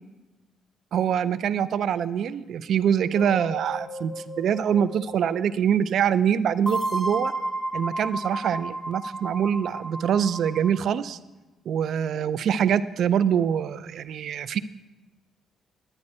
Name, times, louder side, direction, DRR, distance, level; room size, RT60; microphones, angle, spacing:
voice 1, 0.9-7.3 7.7-11.2 11.7-14.6, right 8 dB, 70° right, 16 dB, 0.3 m, -24 dB
sound 1, 3.1-5.4 6.7-10.9, right 1 dB, 10° left, 1.2 m, -33 dB
11.0 x 9.9 x 4.2 m, 1.1 s
cardioid pair, 90°, 0 cm